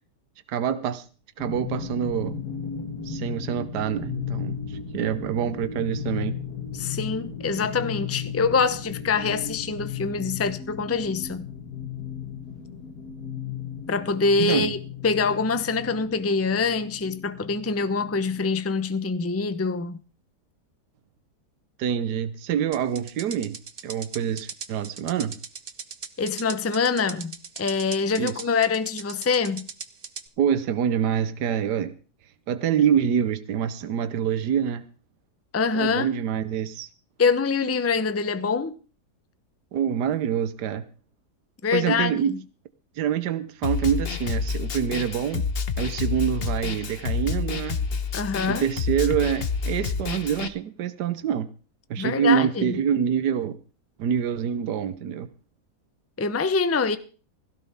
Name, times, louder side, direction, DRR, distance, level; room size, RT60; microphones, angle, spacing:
voice 1, 0.5-1.0 1.4-2.4 3.0-6.3 14.4-14.7 21.8-25.3 28.2-28.3 30.4-31.9 32.5-34.8 35.7-36.9 39.7-40.8 41.7-42.3 43.0-45.4 45.8-47.8 48.5-51.5 51.9-53.6 54.0-55.3, right 8 dB, 80° right, 1.5 m, -26 dB
sound 1, 1.4-18.6, left 7 dB, 70° left, 2.3 m, -35 dB
voice 2, 6.7-11.5 13.9-14.8 15.0-20.0 26.2-29.7 35.5-36.1 37.2-38.7 41.6-42.4 48.1-48.6 52.0-52.7 56.2-57.0, left 4 dB, 15° left, 0.5 m, -25 dB
sound 2, 22.7-30.3, right 6 dB, 40° right, 1.0 m, -39 dB
Snare drum, 43.6-50.5, left 5 dB, 45° left, 1.0 m, -29 dB
16.5 x 16.0 x 3.6 m
omnidirectional pair, 1.7 m